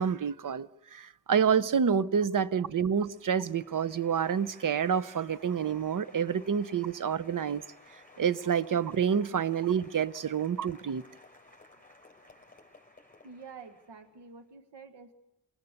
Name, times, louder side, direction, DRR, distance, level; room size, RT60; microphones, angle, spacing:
voice 1, 0.0-7.6 8.2-11.0, right 7 dB, 50° right, 0.8 m, -28 dB
Applause, 1.8-14.3, left 2 dB, 20° left, 5.8 m, -57 dB
voice 2, 13.2-15.1, right 5 dB, 85° right, 1.6 m, -49 dB
26.5 x 21.0 x 6.7 m
cardioid pair, 85°, 41 cm